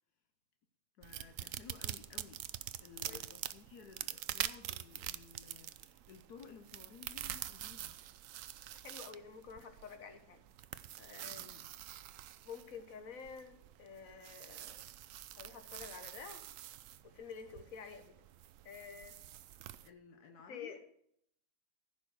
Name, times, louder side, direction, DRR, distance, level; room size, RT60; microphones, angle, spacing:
voice 1, 1.0-8.0 11.4-11.7 19.8-20.8, left 6 dB, 80° left, 6 dB, 1.4 m, -56 dB
sound 1, 1.0-19.9, right 12 dB, 65° right, 0.9 m, -46 dB
voice 2, 8.7-10.4 11.0-11.5 12.4-14.8 15.4-16.5 17.0-18.1 18.6-19.2 20.5-20.8, left 6 dB, 60° left, 7 dB, 1.7 m, -49 dB
15.0 x 5.8 x 6.4 m, 0.69 s
omnidirectional pair, 1.7 m